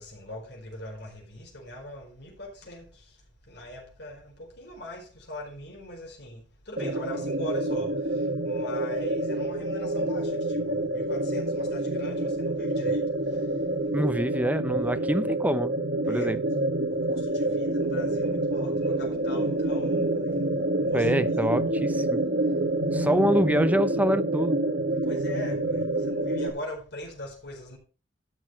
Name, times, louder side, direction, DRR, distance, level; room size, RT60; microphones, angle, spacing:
voice 1, 0.0-3.1 3.5-13.0 13.3-13.4 14.7-15.1 16.0-16.4 16.9-21.1 21.4-21.7 22.9-23.4 25.0-27.8, left 1 dB, 55° left, 4.6 m, -41 dB
sound 1, 6.8-26.5, right 1 dB, 60° right, 1.8 m, -27 dB
voice 2, 13.9-15.8 16.1-16.4 20.9-22.2 22.9-24.6, equal, 10° right, 0.6 m, -26 dB
12.5 x 6.4 x 5.5 m
head